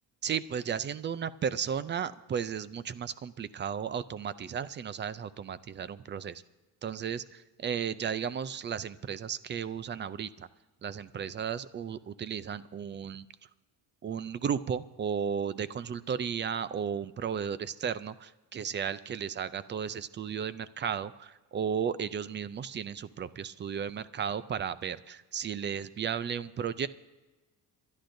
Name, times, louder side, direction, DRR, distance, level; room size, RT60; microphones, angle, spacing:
voice 1, 0.2-6.4 6.8-10.5 10.8-13.3 14.0-26.9, right 7 dB, 30° right, 16 dB, 0.4 m, -34 dB
28.0 x 11.5 x 2.6 m, 1.2 s
cardioid pair, 155°, 40 cm